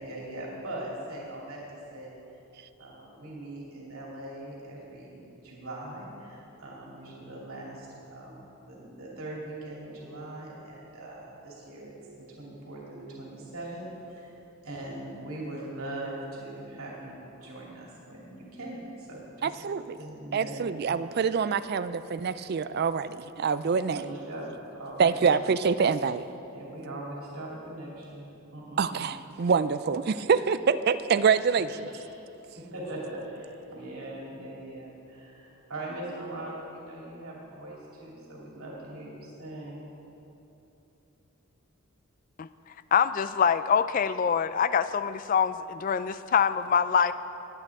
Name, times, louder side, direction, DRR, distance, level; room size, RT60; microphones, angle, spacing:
voice 1, 0.0-2.1 2.8-12.0 12.4-14.4 14.6-19.5 20.0-20.8 23.9-25.4 26.5-28.3 28.5-29.0 32.7-39.9, right 1 dB, 85° right, -4 dB, 2.8 m, -41 dB
voice 2, 19.4-20.0 20.3-24.1 25.0-26.2 28.8-31.9, right 6 dB, 45° right, 14 dB, 0.3 m, -26 dB
voice 3, 42.9-47.1, left 7 dB, 40° left, 13 dB, 0.3 m, -24 dB
20.0 x 8.9 x 3.6 m, 2.9 s
head